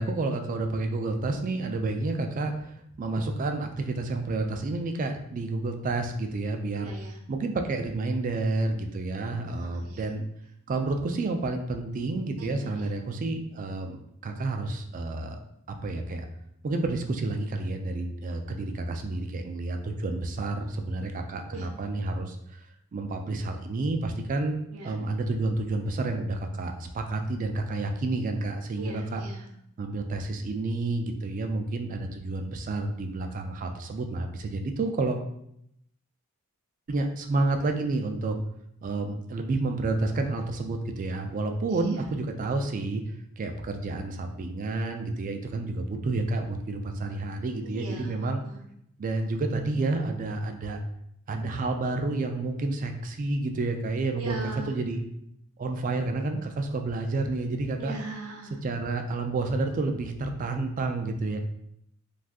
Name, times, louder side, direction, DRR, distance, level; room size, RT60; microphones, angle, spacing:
voice 1, 0.0-2.5 3.0-6.9 7.3-10.3 10.7-15.4 15.7-16.3 16.6-22.4 22.9-24.5 24.8-29.2 29.8-35.2 36.9-38.4 38.8-43.0 43.4-48.4 49.0-50.8 51.3-55.0 55.6-58.0 58.6-61.4, right 2 dB, 35° right, 5 dB, 0.3 m, -30 dB
voice 2, 6.8-7.2 9.5-10.1 12.4-12.9 21.5-21.7 24.7-24.9 28.8-29.5 41.7-42.0 47.6-48.6 54.2-54.7 57.8-58.6, right 2 dB, 85° right, 2 dB, 0.6 m, -40 dB
2.5 x 2.4 x 3.4 m, 0.76 s
head